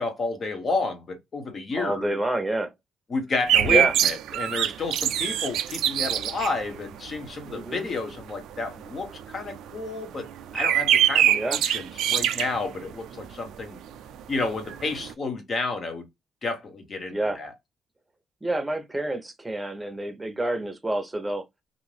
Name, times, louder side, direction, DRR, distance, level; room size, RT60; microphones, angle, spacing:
voice 1, 0.0-2.2 3.1-10.3 10.5-13.8 14.3-16.1 16.4-17.5, left 3 dB, 45° left, 1.1 m, -31 dB
voice 2, 1.7-2.7 3.7-3.9 7.5-7.9 11.3-11.6 17.1-17.4 18.4-21.4, right 1 dB, 10° right, 0.8 m, -28 dB
sound 1, 3.5-13.6 13.9-14.0 14.2-15.1, right 11 dB, 80° right, 0.3 m, -24 dB
2.7 x 2.4 x 3.2 m
cardioid pair, 90°, 0 cm